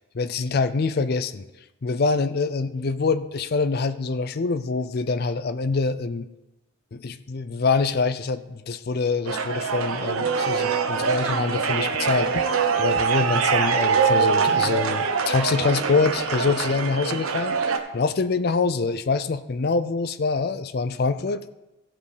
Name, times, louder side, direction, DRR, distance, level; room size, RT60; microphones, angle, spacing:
voice 1, 0.1-1.4 1.8-6.3 6.9-17.6 17.9-21.5, left 4 dB, 45° left, 12 dB, 0.4 m, -25 dB
sound 1, 9.3-17.8, right 5 dB, 85° right, 0.9 m, -23 dB
15.5 x 5.3 x 4.9 m, 1.0 s
head